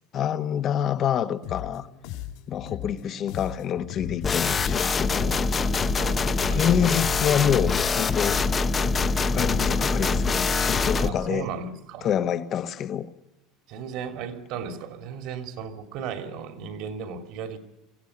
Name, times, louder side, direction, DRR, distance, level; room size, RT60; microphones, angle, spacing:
voice 1, 0.1-1.9 2.5-5.4 6.4-8.4 9.3-11.5 12.0-13.1, left 9 dB, 35° left, 1.3 m, -27 dB
sound 1, 1.4-11.3, left 12 dB, 70° left, 3.4 m, -37 dB
sound 2, 4.2-11.1, left 4 dB, 20° left, 0.9 m, -24 dB
voice 2, 6.0-6.7 11.0-12.1 13.7-17.6, right 6 dB, 60° right, 2.8 m, -35 dB
24.5 x 16.5 x 9.9 m
cardioid pair, 145°, 0 cm